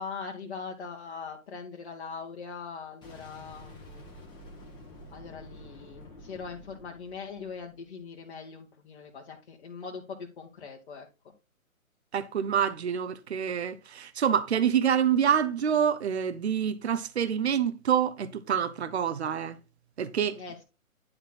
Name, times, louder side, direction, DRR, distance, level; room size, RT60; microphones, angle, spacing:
voice 1, 0.0-4.0 5.1-11.1 20.3-20.6, left 5 dB, 40° left, 1.7 m, -41 dB
Boom, 3.0-7.9, left 1 dB, 10° left, 1.7 m, -49 dB
voice 2, 12.1-19.6 20.0-20.4, right 8 dB, 50° right, 1.0 m, -27 dB
10.5 x 4.3 x 3.9 m
figure-of-eight pair, 135°, 42 cm